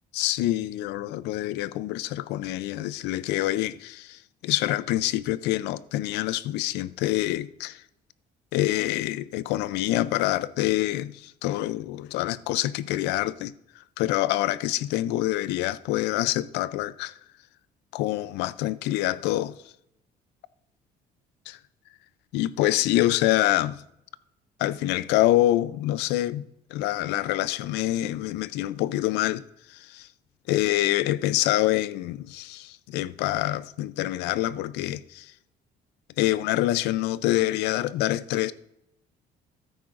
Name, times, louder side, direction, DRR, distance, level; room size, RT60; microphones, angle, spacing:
voice 1, 0.1-7.8 8.5-13.5 14.0-17.2 17.9-19.6 21.5-21.6 22.3-23.8 24.6-26.4 26.7-29.4 29.7-30.1 30.5-35.3 36.2-38.5, left 15 dB, 90° left, 0.5 m, -26 dB
14.0 x 9.0 x 2.5 m
cardioid pair, 110°, 17 cm